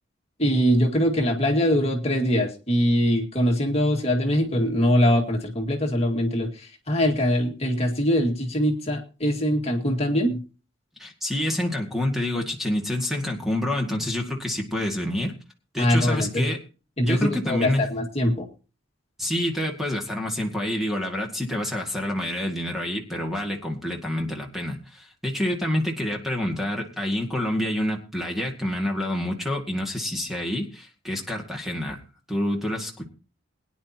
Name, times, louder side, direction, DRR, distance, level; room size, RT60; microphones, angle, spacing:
voice 1, 0.4-10.4 15.8-16.5 17.0-18.5, equal, 30° left, 2 dB, 2.0 m, -22 dB
voice 2, 11.0-15.3 15.7-16.6 17.0-17.8 19.2-32.0 32.3-33.1, left 1 dB, ahead, 1 dB, 2.0 m, -27 dB
22.5 x 10.0 x 2.9 m, 0.34 s
head